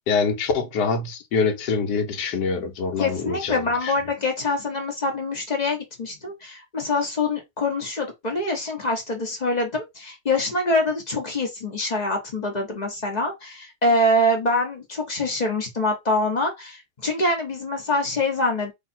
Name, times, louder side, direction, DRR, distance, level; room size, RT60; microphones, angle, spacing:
voice 1, 0.1-3.9, left 5 dB, 60° left, 1.3 m, -25 dB
voice 2, 2.9-18.7, left 2 dB, 35° left, 0.6 m, -25 dB
3.2 x 2.9 x 4.3 m
omnidirectional pair, 2.4 m